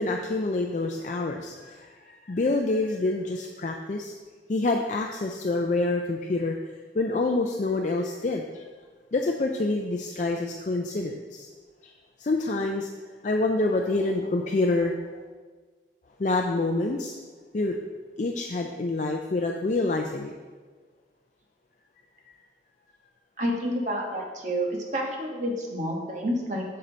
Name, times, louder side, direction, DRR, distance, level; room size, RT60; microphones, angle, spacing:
voice 1, 0.0-4.1 4.5-6.6 6.9-8.6 9.1-11.5 11.8-11.9 12.2-12.9 13.2-15.2 16.2-17.1 17.5-17.8 18.2-20.3, left 2 dB, 40° left, 2 dB, 0.4 m, -27 dB
voice 2, 23.4-26.6, equal, 40° right, 0 dB, 1.3 m, -29 dB
7.4 x 6.7 x 4.0 m, 1.4 s
head